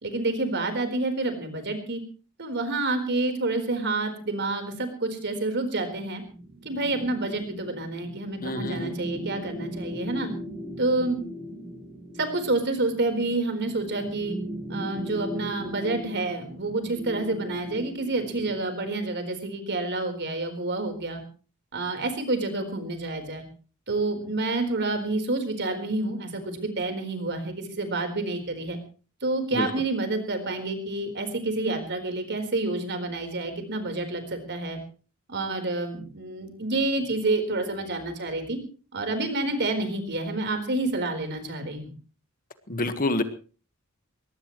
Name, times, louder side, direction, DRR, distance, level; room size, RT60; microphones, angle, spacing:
voice 1, 0.0-2.0 2.4-6.2 6.6-10.3 10.8-11.2 12.2-14.4 14.7-21.2 21.7-23.4 23.9-28.8 29.2-34.8 35.3-38.6 38.9-41.9, right 2 dB, 55° right, 7 dB, 4.3 m, -28 dB
sound 1, 6.3-18.7, equal, 15° right, 7.0 m, -38 dB
voice 2, 8.4-8.9 29.5-29.7 42.7-43.2, left 2 dB, 40° left, 9 dB, 1.6 m, -27 dB
22.0 x 18.5 x 3.2 m, 0.37 s
head